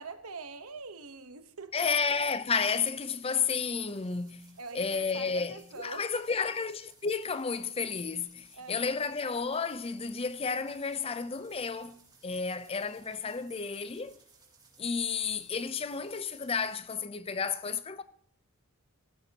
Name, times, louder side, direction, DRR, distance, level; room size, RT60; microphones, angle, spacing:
voice 1, 0.0-1.9 4.6-6.5 8.6-9.0, right 4 dB, 85° right, 1.1 m, -44 dB
voice 2, 1.7-14.1 14.8-18.0, left 5 dB, 25° left, 0.5 m, -32 dB
sound 1, 2.6-16.8, right 4 dB, 20° right, 4.0 m, -61 dB
16.5 x 14.0 x 2.9 m
head